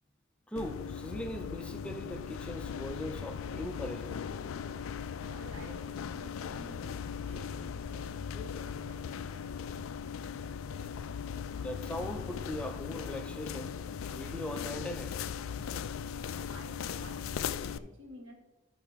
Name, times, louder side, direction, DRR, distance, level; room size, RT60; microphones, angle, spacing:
voice 1, 0.5-4.3 11.6-13.8 14.1-15.2, left 1 dB, 5° left, 5 dB, 0.4 m, -40 dB
sound 1, 0.6-17.8, left 7 dB, 85° left, 0.4 m, -39 dB
voice 2, 5.2-9.8 16.5-18.3, equal, 70° right, 2 dB, 1.6 m, -52 dB
12.5 x 5.7 x 3.5 m, 1.1 s
head